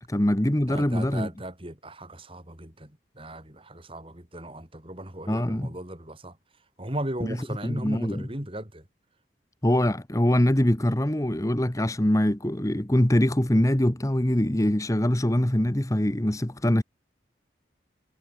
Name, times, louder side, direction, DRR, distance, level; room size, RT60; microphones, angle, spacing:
voice 1, 0.1-1.3 5.3-5.7 7.2-7.4 7.6-8.2 9.6-16.8, left 1 dB, 20° left, 1.1 m, -23 dB
voice 2, 0.6-6.4 6.8-8.9, right 1 dB, 30° right, 4.0 m, -37 dB
head